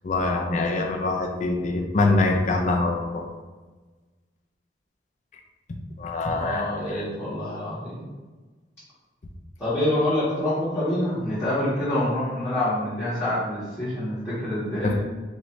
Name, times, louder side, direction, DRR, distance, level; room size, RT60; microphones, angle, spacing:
voice 1, 0.0-3.3 6.0-7.0 14.8-14.9, left 2 dB, 40° left, 2 dB, 0.4 m, -24 dB
voice 2, 6.3-8.0 9.6-14.9, left 1 dB, 15° left, -14 dB, 1.5 m, -26 dB
4.6 x 2.7 x 3.1 m, 1.3 s
head